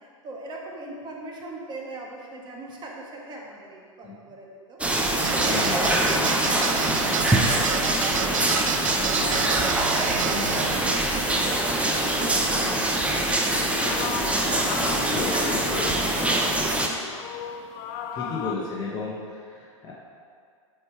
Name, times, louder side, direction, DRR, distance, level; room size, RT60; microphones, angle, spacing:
voice 1, 0.0-4.8 5.3-7.2 9.1-11.0 11.4-14.2 15.0-16.4 18.2-19.0, right 2 dB, 25° right, -2 dB, 1.5 m, -39 dB
sound 1, 4.8-16.9, right 1 dB, 5° right, 0.8 m, -24 dB
sound 2, 5.2-10.7, right 9 dB, 80° right, 0.4 m, -29 dB
voice 2, 5.4-6.1 10.2-10.7 14.8-15.9 18.1-19.9, left 3 dB, 25° left, -5 dB, 1.2 m, -33 dB
sound 3, 13.5-18.6, left 8 dB, 45° left, 0.5 m, -36 dB
7.8 x 4.7 x 4.9 m, 2.2 s
hypercardioid pair, 105°, 17 cm